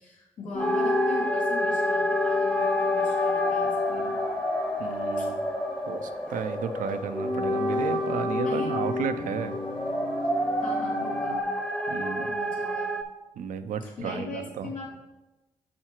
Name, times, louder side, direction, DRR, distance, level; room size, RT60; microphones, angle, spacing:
voice 1, 0.0-4.2 5.2-5.3 8.4-8.8 10.6-11.5 12.2-12.9 13.8-15.0, left 3 dB, 80° left, -4 dB, 2.5 m, -40 dB
sound 1, 0.5-11.4, left 3 dB, 40° left, 1.1 m, -30 dB
sound 2, 0.6-13.0, right 1 dB, 10° left, 1.0 m, -30 dB
voice 2, 4.8-5.4 5.9-9.6 11.9-12.3 13.4-14.7, right 7 dB, 80° right, 10 dB, 0.6 m, -33 dB
6.2 x 5.5 x 4.5 m, 1.0 s
supercardioid pair, 50°, 14 cm